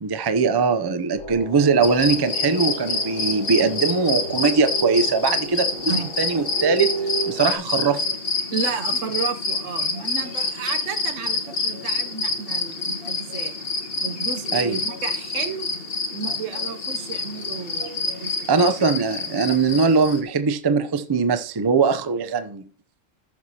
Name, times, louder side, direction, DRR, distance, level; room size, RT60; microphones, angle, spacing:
voice 1, 0.0-6.9 7.3-8.0 14.5-14.8 18.5-22.7, right 5 dB, 35° right, 0.4 m, -21 dB
sound 1, 1.2-7.5, right 3 dB, 75° left, 3.5 m, -33 dB
sound 2, 1.8-20.2, left 3 dB, 50° left, 1.5 m, -27 dB
voice 2, 8.5-13.6 14.0-15.7 16.1-18.7, right 6 dB, 75° right, 1.1 m, -32 dB
14.5 x 6.2 x 2.8 m
omnidirectional pair, 1.3 m